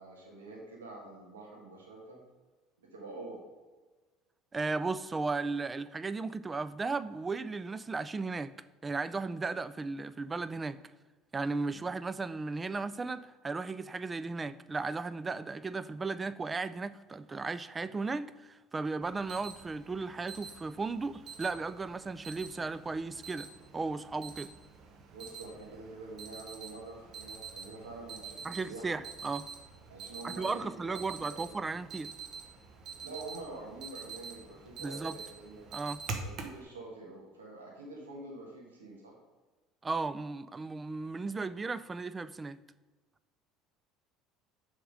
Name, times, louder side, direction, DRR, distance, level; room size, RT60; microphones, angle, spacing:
voice 1, 0.0-2.2 2.9-3.4 11.6-11.8 25.1-29.0 29.9-31.6 33.0-35.7 36.2-39.2, right 2 dB, 90° right, -2 dB, 1.4 m, -46 dB
voice 2, 4.5-8.5 8.8-10.8 11.3-23.5 23.7-24.5 28.4-29.5 30.2-32.1 34.8-35.2 35.7-36.0 39.8-42.6, right 3 dB, 25° right, 15 dB, 0.3 m, -35 dB
Alarm, 19.0-36.6, right 5 dB, 50° right, 0.9 m, -46 dB
7.0 x 3.6 x 5.1 m, 1.3 s
hypercardioid pair, 70°, 0 cm